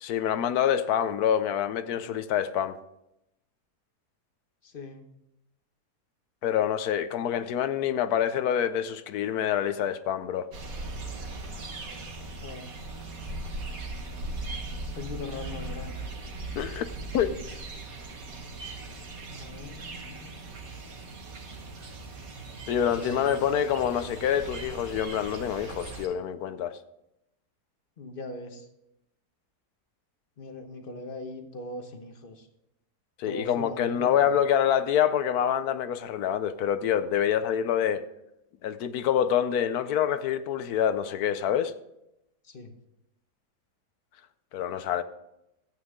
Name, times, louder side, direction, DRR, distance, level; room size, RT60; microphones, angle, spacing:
voice 1, 0.0-2.8 6.4-10.5 16.5-17.4 22.7-26.8 33.2-38.1 38.6-41.7 44.5-45.0, left 9 dB, 75° left, 12 dB, 1.1 m, -26 dB
voice 2, 4.6-5.1 12.4-12.7 14.9-15.9 19.3-20.4 23.0-23.3 28.0-28.7 30.4-32.5 33.2-34.4 42.4-42.7, left 2 dB, 40° left, 6 dB, 1.1 m, -40 dB
sound 1, 10.5-26.1, right 2 dB, 60° right, 1.8 m, -39 dB
13.0 x 8.8 x 3.7 m, 0.85 s
omnidirectional pair, 1.7 m